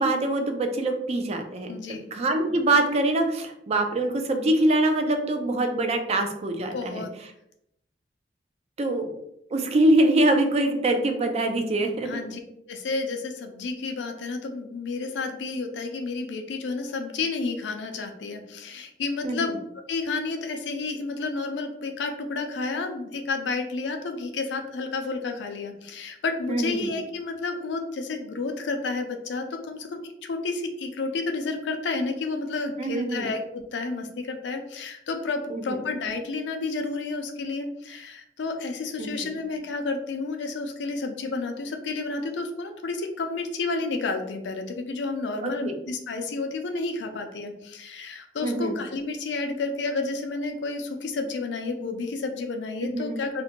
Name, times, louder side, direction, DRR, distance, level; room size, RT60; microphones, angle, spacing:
voice 1, 0.0-1.7 2.1-7.0 8.8-9.1 9.5-12.1 19.2-19.5 26.5-26.9 32.8-33.3 35.5-35.8 39.0-39.3 45.4-45.8 48.4-48.8 52.8-53.2, right 2 dB, 35° right, 5 dB, 0.3 m, -24 dB
voice 2, 1.7-2.0 6.7-7.1 12.0-12.4 12.7-19.6 19.9-53.4, left 3 dB, 75° left, 5 dB, 0.4 m, -31 dB
2.5 x 2.1 x 2.8 m, 0.78 s
head